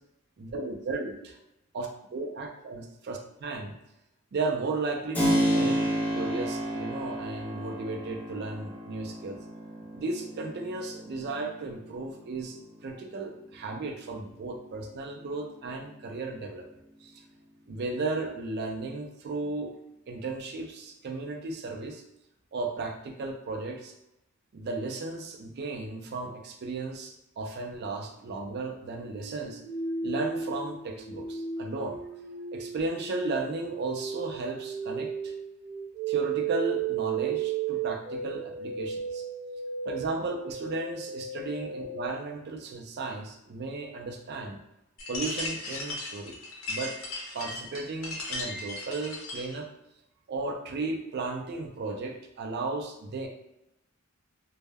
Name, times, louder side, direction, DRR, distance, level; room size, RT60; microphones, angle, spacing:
voice 1, 0.4-1.3 1.7-3.7 4.3-9.4 9.9-16.7 17.0-17.1 17.7-19.7 20.1-22.0 22.5-23.9 24.5-29.6 30.0-32.0 32.5-35.3 36.1-39.2 39.9-44.6 45.1-46.4 46.7-47.0 47.3-49.7 50.3-53.3, right 3 dB, 50° right, 2 dB, 0.4 m, -35 dB
Keyboard (musical), 5.1-13.7, equal, 10° left, 0.6 m, -31 dB
sound 1, 28.8-42.1, right 6 dB, 30° right, 0.8 m, -34 dB
sound 2, 45.0-49.6, left 2 dB, 75° left, 0.6 m, -37 dB
2.1 x 2.1 x 3.3 m, 0.87 s
head